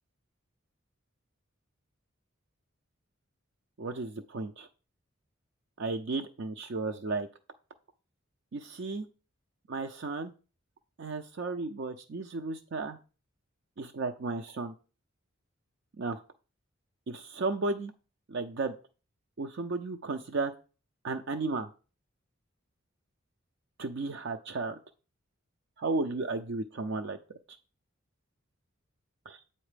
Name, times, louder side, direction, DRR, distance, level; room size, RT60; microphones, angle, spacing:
voice 1, 3.8-4.7 5.8-7.3 8.5-9.1 9.7-10.3 11.0-13.0 13.8-14.7 16.0-16.2 17.1-17.9 18.3-18.7 19.4-20.5 21.0-21.7 23.8-24.8 25.8-27.2 29.3-29.4, right 3 dB, 60° right, 7 dB, 0.5 m, -34 dB
8.0 x 4.3 x 5.0 m, 0.35 s
head